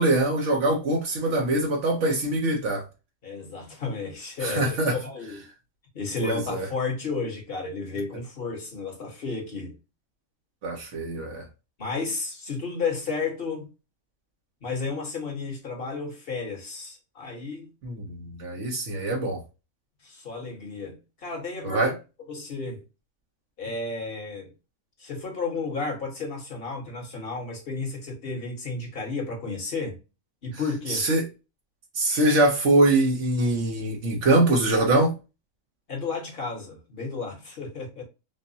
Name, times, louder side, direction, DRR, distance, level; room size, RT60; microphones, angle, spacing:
voice 1, 0.0-2.8 4.4-5.0 6.2-6.7 10.6-11.4 17.8-19.4 21.6-22.0 30.9-31.2 31.9-35.1, right 2 dB, 70° right, 1.1 m, -23 dB
voice 2, 3.2-5.4 5.9-9.7 11.8-13.7 14.6-17.7 20.0-21.9 22.3-22.8 23.6-24.5 25.0-30.0 30.4-31.1 35.9-38.0, left 4 dB, 45° left, 1.6 m, -32 dB
5.3 x 2.1 x 2.6 m
omnidirectional pair, 1.4 m